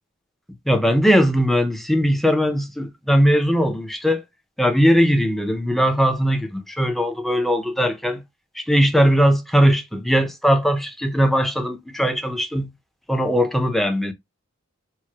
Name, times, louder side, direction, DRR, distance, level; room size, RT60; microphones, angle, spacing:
voice 1, 0.7-4.2 4.6-8.2 8.6-12.7 13.1-14.1, equal, ahead, 0.5 m, -19 dB
4.6 x 2.1 x 4.6 m
head